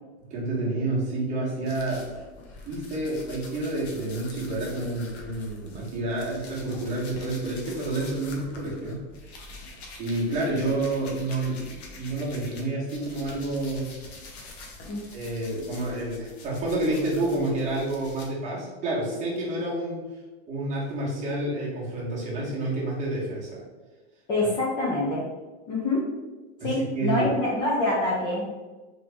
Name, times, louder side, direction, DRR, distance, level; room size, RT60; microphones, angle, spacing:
voice 1, 0.3-2.0 2.6-9.0 10.0-14.0 15.1-20.0 20.5-23.6 26.6-27.3, right 2 dB, 20° right, -5 dB, 1.2 m, -29 dB
sound 1, 1.6-12.6 12.9-18.3, left 2 dB, 65° left, 1.1 m, -45 dB
voice 2, 24.3-25.2 25.7-26.1 26.6-28.5, left 2 dB, 15° left, -6 dB, 0.3 m, -25 dB
4.0 x 3.1 x 3.4 m, 1.2 s
supercardioid pair, 160°, 34 cm